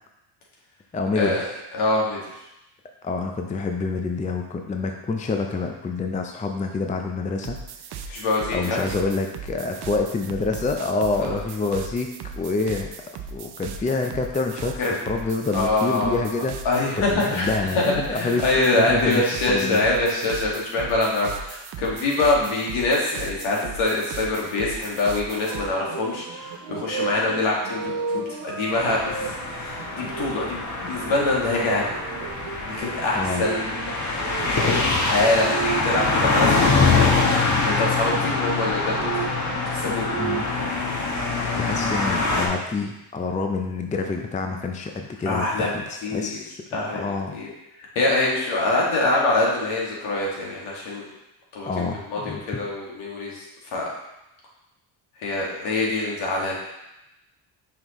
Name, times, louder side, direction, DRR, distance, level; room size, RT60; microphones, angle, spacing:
voice 1, 0.9-1.4 3.0-7.6 8.0-8.1 8.5-12.1 12.3-12.9 13.3-16.6 17.0-19.8 33.1-33.5 40.2-40.5 41.6-46.6 46.9-47.4 51.6-52.6, left 3 dB, 15° left, 3 dB, 0.5 m, -27 dB
voice 2, 1.7-2.2 8.1-8.8 11.2-11.3 14.8-14.9 15.5-16.2 16.7-17.5 17.7-31.9 32.6-33.7 34.4-39.3 39.7-40.2 45.3-45.7 46.0-46.4 46.7-47.0 47.3-47.5 48.0-51.1 51.5-53.4 53.7-53.8 55.2-56.6, left 2 dB, 70° left, -3 dB, 2.1 m, -24 dB
sound 1, 7.4-25.7, right 6 dB, 55° right, 0.7 m, -38 dB
sound 2, 25.4-37.4 38.5-40.7, right 6 dB, 80° right, 0.9 m, -34 dB
sound 3, 28.7-42.5, left 3 dB, 35° left, 1.3 m, -24 dB
5.7 x 5.3 x 3.1 m, 0.91 s
supercardioid pair, 80°, 48 cm